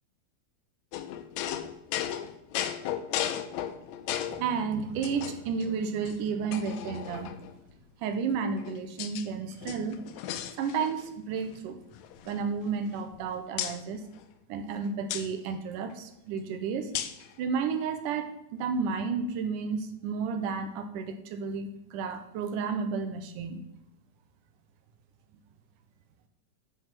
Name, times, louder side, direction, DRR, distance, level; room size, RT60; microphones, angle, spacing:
sound 1, 0.9-4.5 5.0-5.6 6.0-6.1 6.5-7.6 8.3-9.3 9.6-11.1 11.4-11.6 11.9-13.2 13.6-13.8 15.1-15.3 16.9-17.3, left 11 dB, 75° left, 1.8 m, -35 dB
voice 1, 4.3-7.4 8.0-10.0 10.6-11.8 12.3-14.0 14.5-16.9 17.4-23.6, right 5 dB, 90° right, 8 dB, 2.4 m, -32 dB
9.1 x 5.5 x 6.0 m, 0.82 s
omnidirectional pair, 3.6 m